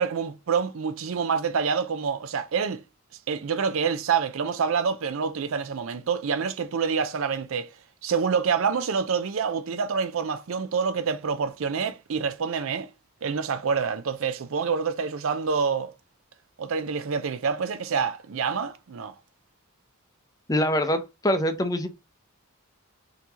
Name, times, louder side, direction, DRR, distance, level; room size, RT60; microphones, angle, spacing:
voice 1, 0.0-2.8 3.3-7.7 8.0-12.9 13.2-15.9 16.6-19.1, right 6 dB, 65° right, 0.5 m, -27 dB
voice 2, 20.5-21.9, equal, 15° left, 0.6 m, -24 dB
5.6 x 2.9 x 2.9 m
head